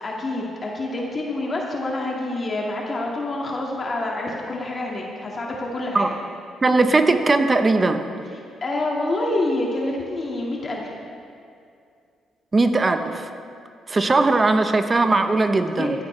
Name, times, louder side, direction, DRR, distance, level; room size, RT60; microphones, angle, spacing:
voice 1, 0.0-6.1 8.3-10.9 15.7-16.0, left 2 dB, 35° left, -2 dB, 1.9 m, -27 dB
voice 2, 6.6-8.0 12.5-13.3 13.9-15.9, right 3 dB, 25° right, 8 dB, 0.8 m, -19 dB
14.0 x 14.0 x 3.3 m, 2.4 s
cardioid pair, 90°, 0 cm